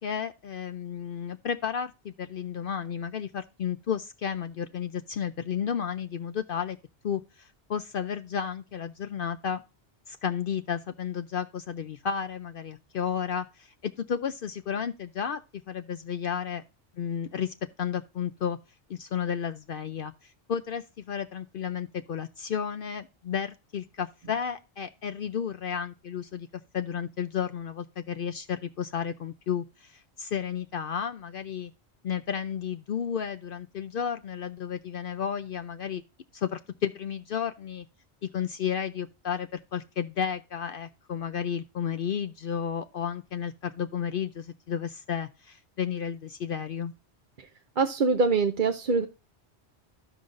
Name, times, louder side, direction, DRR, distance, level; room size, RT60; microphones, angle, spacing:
voice 1, 0.0-6.8 7.0-9.6 10.1-16.6 17.0-18.6 18.9-20.1 20.5-26.5 26.7-31.7 32.0-36.0 36.3-37.9 38.3-46.9, left 8 dB, 60° left, 0.7 m, -32 dB
voice 2, 47.8-49.1, right 4 dB, 50° right, 0.8 m, -24 dB
14.5 x 5.5 x 2.5 m
omnidirectional pair, 1.2 m